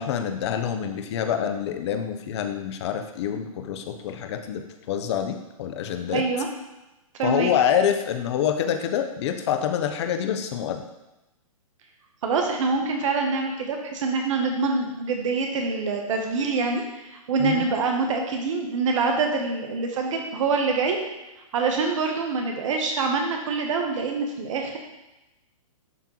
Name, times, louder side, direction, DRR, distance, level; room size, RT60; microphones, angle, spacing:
voice 1, 0.0-4.6 4.9-6.2 7.2-10.8 17.4-17.7, left 9 dB, 50° left, 7 dB, 0.7 m, -26 dB
voice 2, 6.1-6.5 7.2-7.5 12.2-21.0 21.5-24.8, right 4 dB, 60° right, 2 dB, 1.0 m, -25 dB
11.0 x 3.7 x 3.0 m, 0.99 s
hypercardioid pair, 140°, 19 cm